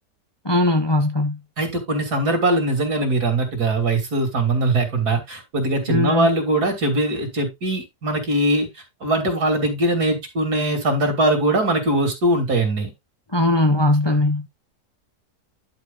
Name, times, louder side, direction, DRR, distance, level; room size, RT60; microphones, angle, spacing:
voice 1, 0.4-1.4 5.9-6.3 13.3-14.5, left 2 dB, 20° left, 0.8 m, -19 dB
voice 2, 1.6-8.7 9.0-12.9, right 2 dB, 70° right, 3.3 m, -21 dB
11.0 x 5.0 x 3.9 m
omnidirectional pair, 1.7 m